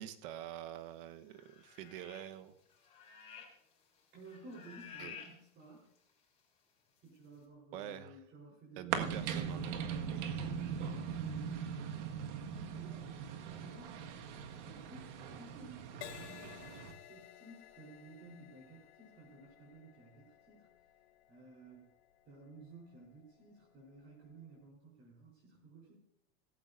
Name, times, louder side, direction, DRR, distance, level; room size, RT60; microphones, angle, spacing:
voice 1, 0.0-2.5 5.0-5.1 7.7-8.1 8.8-9.8, right 11 dB, 50° right, 10 dB, 1.1 m, -46 dB
sound 1, 1.3-2.4 2.7-3.7 4.0-5.3 6.0-6.1, left 7 dB, 20° left, 3.7 m, -52 dB
voice 2, 4.1-5.8 7.0-9.3 9.8-11.8 12.8-14.0 14.5-20.7 21.3-21.9 22.3-25.9, right 2 dB, 30° right, -3 dB, 4.0 m, -55 dB
sound 2, 8.9-16.9, right 7 dB, 80° right, 1.8 m, -40 dB
Crash cymbal, 16.0-23.6 24.3-24.6, left 13 dB, 65° left, 1.1 m, -56 dB
17.0 x 15.0 x 2.6 m, 0.78 s
supercardioid pair, 170°, 35 cm